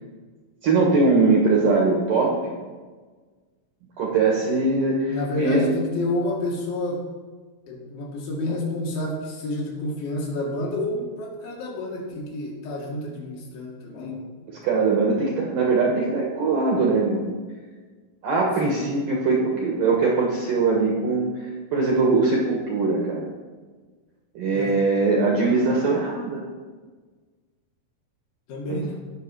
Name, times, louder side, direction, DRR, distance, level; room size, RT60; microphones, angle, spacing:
voice 1, 0.6-2.5 4.0-5.6 14.6-17.2 18.2-23.2 24.4-26.4 28.7-28.9, right 3 dB, 70° right, -2 dB, 2.1 m, -21 dB
voice 2, 5.1-7.0 7.7-14.2 18.6-19.0 24.5-24.8 28.5-29.0, left 1 dB, 70° left, -3 dB, 4.1 m, -29 dB
17.0 x 6.0 x 4.5 m, 1.4 s
omnidirectional pair, 5.6 m